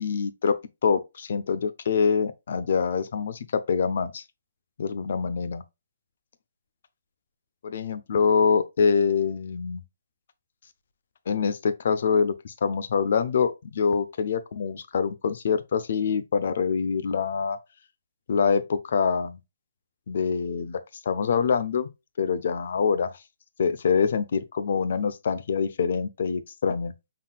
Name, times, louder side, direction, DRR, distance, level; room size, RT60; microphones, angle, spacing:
voice 1, 0.0-4.2 4.8-5.6 7.6-9.8 11.3-17.6 18.3-19.4 20.1-20.8 21.1-21.9 22.2-23.1 23.6-26.9, left 6 dB, 60° left, 0.6 m, -25 dB
5.6 x 3.7 x 2.3 m
hypercardioid pair, 155°, 0 cm